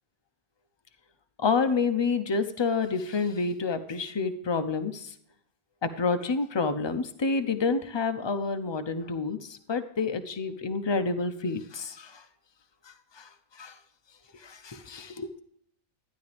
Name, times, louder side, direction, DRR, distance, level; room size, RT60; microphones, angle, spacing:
voice 1, 1.4-5.1 5.8-12.2 13.2-13.3 13.6-13.7 14.4-15.3, left 4 dB, 30° left, 8 dB, 0.5 m, -28 dB
12.0 x 10.0 x 3.4 m, 0.69 s
omnidirectional pair, 1.4 m